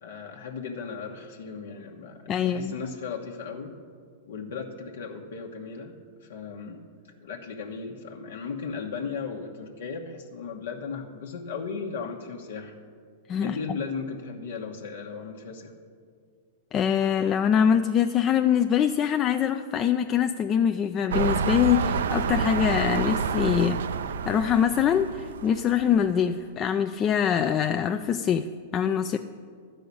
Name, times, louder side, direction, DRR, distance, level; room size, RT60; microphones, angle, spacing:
voice 1, 0.0-3.7 4.2-5.9 6.2-6.8 7.2-12.8 13.4-15.7, left 5 dB, 80° left, 0 dB, 1.1 m, -36 dB
voice 2, 2.3-2.8 13.3-13.6 16.7-23.8 24.2-29.2, left 8 dB, 30° left, 7 dB, 0.4 m, -24 dB
sound 1, 21.1-26.1 26.7-26.8, right 5 dB, 80° right, 0.5 m, -28 dB
12.0 x 5.6 x 8.4 m, 2.1 s
hypercardioid pair, 135°, 0 cm